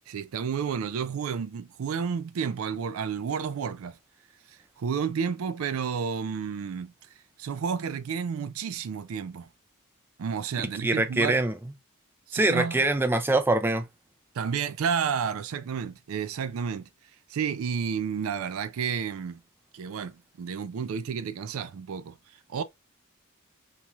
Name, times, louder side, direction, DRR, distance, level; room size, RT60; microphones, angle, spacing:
voice 1, 0.1-4.0 4.8-6.9 7.4-9.5 10.2-11.4 12.3-12.8 14.3-16.9 17.3-19.4 19.7-22.2 22.5-22.6, right 6 dB, 85° right, 0.4 m, -31 dB
voice 2, 10.8-11.5 12.3-13.8, right 2 dB, 10° right, 0.3 m, -24 dB
3.0 x 2.3 x 2.6 m
head